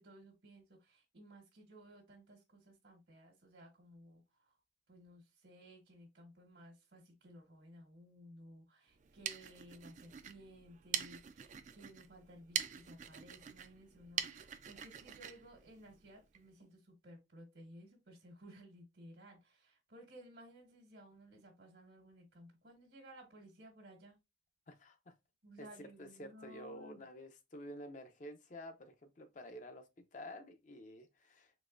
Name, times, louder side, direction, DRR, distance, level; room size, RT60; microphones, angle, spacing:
voice 1, 0.0-4.5 4.9-24.2 25.4-27.0, equal, 75° right, 1.3 m, -57 dB
sound 1, 8.9-16.4, right 9 dB, 45° right, 0.3 m, -44 dB
voice 2, 24.7-25.1 25.6-25.7 26.0-31.5, equal, 45° left, 0.6 m, -50 dB
4.0 x 3.1 x 2.5 m
head